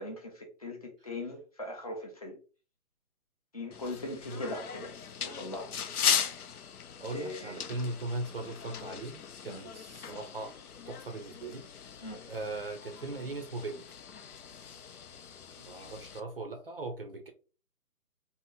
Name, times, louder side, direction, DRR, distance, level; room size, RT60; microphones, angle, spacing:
voice 1, 0.0-2.4 3.5-5.7 7.1-7.6 9.5-9.6 12.0-12.2, left 1 dB, 25° left, 0.5 m, -40 dB
sound 1, 3.7-16.2, left 7 dB, 85° left, 0.6 m, -38 dB
voice 2, 7.0-10.6 10.9-11.6 12.3-13.9 15.7-17.3, right 2 dB, 40° right, 0.5 m, -39 dB
2.8 x 2.0 x 3.4 m
figure-of-eight pair, 150°, 43 cm